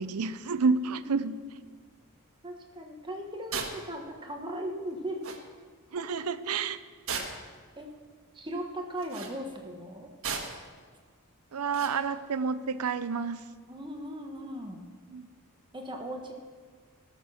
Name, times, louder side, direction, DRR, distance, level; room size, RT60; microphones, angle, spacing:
voice 1, 0.0-1.6 5.9-6.8 11.5-13.4 15.1-15.3, right 5 dB, 85° right, 12 dB, 0.6 m, -30 dB
voice 2, 2.4-5.2 7.8-7.9 8.3-10.1 13.7-14.8 15.7-16.4, right 1 dB, 20° right, 2 dB, 1.2 m, -38 dB
sound 1, 3.5-3.8 4.9-5.0 5.2-5.4 7.1-7.5 9.0-9.3 10.2-10.7 11.7-12.0, right 5 dB, 65° right, 1.6 m, -35 dB
19.0 x 6.7 x 6.3 m, 1.5 s
head